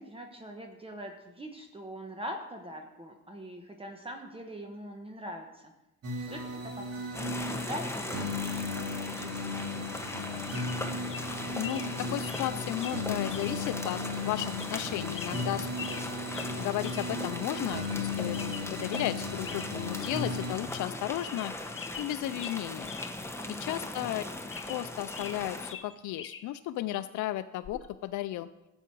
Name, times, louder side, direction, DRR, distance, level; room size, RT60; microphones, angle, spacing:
voice 1, 0.0-5.7 6.2-9.9 23.4-23.9, equal, 20° right, 3 dB, 1.2 m, -43 dB
sound 1, 6.0-20.6, left 3 dB, 55° right, 2.2 m, -36 dB
sound 2, 7.1-25.7, left 2 dB, 10° left, 1.1 m, -39 dB
sound 3, 10.1-10.2 10.5-10.8 11.1-11.3 11.6-11.9 12.2-12.5 12.8-13.0 13.3-13.6 13.9-14.0 14.6-14.8 15.1-16.1 16.3-16.5 16.8-17.1 17.4-17.5 17.8-18.0 18.3-19.1 19.4-19.7 20.0-20.2 20.6-20.7 21.1-21.5 21.7-23.1 23.4-23.5 24.1-25.4 25.7-26.4 27.6-27.9, left 7 dB, 45° left, 1.0 m, -43 dB
voice 2, 11.6-15.7 16.6-18.4 18.6-22.9 23.5-24.2 24.7-28.5, left 14 dB, 75° left, 10 dB, 0.5 m, -34 dB
12.0 x 8.0 x 4.6 m, 0.96 s
cardioid pair, 90°, 30 cm